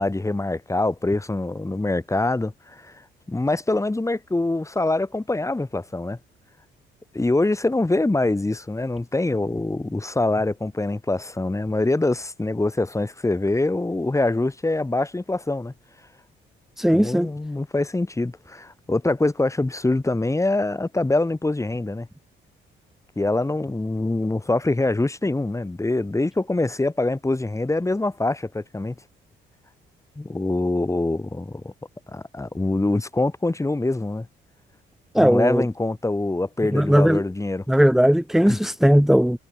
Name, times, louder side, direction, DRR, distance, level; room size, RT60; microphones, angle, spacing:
voice 1, 0.0-6.2 7.1-15.7 16.9-22.1 23.2-29.0 30.2-31.7 32.1-34.3 35.2-37.6 38.5-38.6, left 2 dB, 15° left, 5.4 m, -24 dB
voice 2, 16.8-17.3 35.1-35.6 36.7-37.2 37.7-39.4, equal, ahead, 1.2 m, -17 dB
cardioid pair, 90°, 20 cm